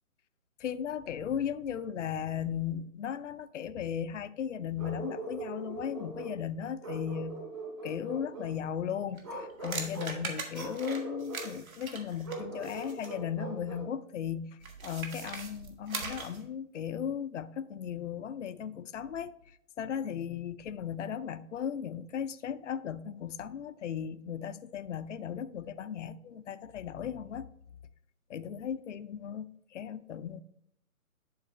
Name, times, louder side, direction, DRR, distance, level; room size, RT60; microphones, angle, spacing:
voice 1, 0.6-7.4 7.8-19.3 19.8-27.5 28.3-30.4, left 8 dB, 60° left, 0.5 m, -36 dB
Bark, 4.8-6.4 6.8-8.6 9.2-10.2 10.5-11.5 12.2-13.9, right 2 dB, 20° right, 0.9 m, -41 dB
sound 1, 9.2-13.2 14.6-16.5, right 4 dB, 70° right, 1.6 m, -41 dB
11.0 x 3.9 x 3.2 m
figure-of-eight pair, 155°, 43 cm